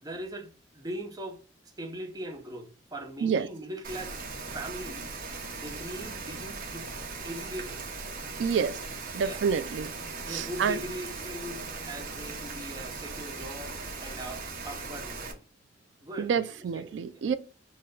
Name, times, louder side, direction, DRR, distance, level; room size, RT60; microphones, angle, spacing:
voice 1, 0.0-5.1 5.6-6.9 7.2-7.8 9.1-9.4 10.3-15.4 16.0-17.2, right 1 dB, 20° right, 0.7 m, -41 dB
Rain, 3.8-15.3, right 4 dB, 50° right, 0.9 m, -39 dB
voice 2, 8.4-8.8 9.1-9.9 10.3-10.8 16.2-17.3, right 6 dB, 80° right, 0.3 m, -28 dB
5.6 x 2.2 x 3.8 m
head